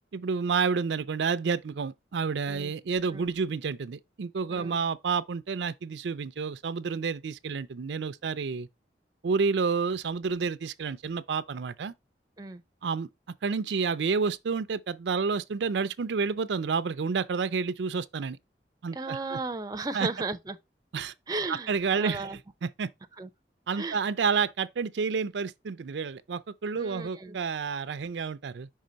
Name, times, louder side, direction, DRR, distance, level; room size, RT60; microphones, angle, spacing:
voice 1, 0.1-8.7 9.2-11.9 12.8-13.1 13.4-18.4 18.8-19.4 19.9-20.1 20.9-21.1 21.5-22.3 22.6-22.9 23.7-28.7, right 5 dB, 85° right, 0.4 m, -29 dB
voice 2, 18.9-20.6 21.3-22.4 23.2-23.3 23.8-24.0 26.7-27.4, right 3 dB, 20° right, 0.5 m, -35 dB
5.6 x 3.3 x 5.1 m
head